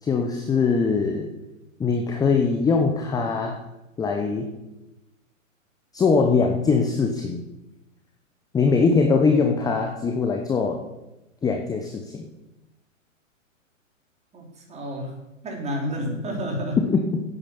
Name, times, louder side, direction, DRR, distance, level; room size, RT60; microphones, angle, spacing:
voice 1, 0.0-1.3 1.8-3.6 4.0-4.5 5.9-7.4 8.5-10.8 11.4-12.2 16.8-17.2, left 4 dB, 10° left, 4 dB, 0.8 m, -22 dB
voice 2, 14.3-15.1 15.4-16.8, equal, 15° right, 0 dB, 3.5 m, -30 dB
9.7 x 9.0 x 6.9 m, 0.97 s
hypercardioid pair, 125°, 39 cm